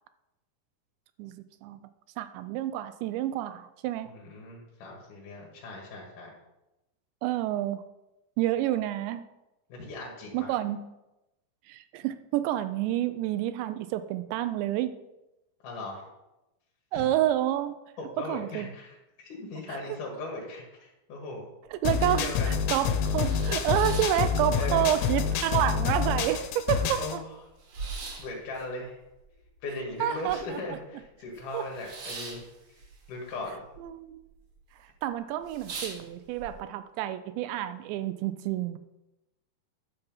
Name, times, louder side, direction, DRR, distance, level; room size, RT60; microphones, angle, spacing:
voice 1, 2.2-4.1 7.2-7.8 8.4-9.2 10.3-10.8 11.7-14.9 16.9-17.7 18.2-18.7 19.7-20.0 21.7-27.0 30.0-30.6 31.5-31.7 33.8-34.2 35.0-38.8, right 12 dB, 85° right, 12 dB, 2.7 m, -29 dB
voice 2, 4.1-6.3 9.7-10.6 15.6-16.1 16.9-17.1 18.0-21.5 22.0-22.6 24.6-24.9 27.0-27.3 27.8-27.9 28.2-29.0 29.6-32.4 33.1-33.6, left 2 dB, 55° left, -2 dB, 2.7 m, -38 dB
sound 1, 21.7-21.8 22.2-22.3 22.7-24.9 25.2-26.0 26.3-26.4 26.6-30.7 31.0-33.8 34.1-34.6 35.0-35.1 35.4-36.5, right 4 dB, 60° right, 1.7 m, -42 dB
sound 2, 21.9-27.2, left 7 dB, 75° left, 2.9 m, -27 dB
11.5 x 6.9 x 5.4 m, 0.96 s
omnidirectional pair, 5.4 m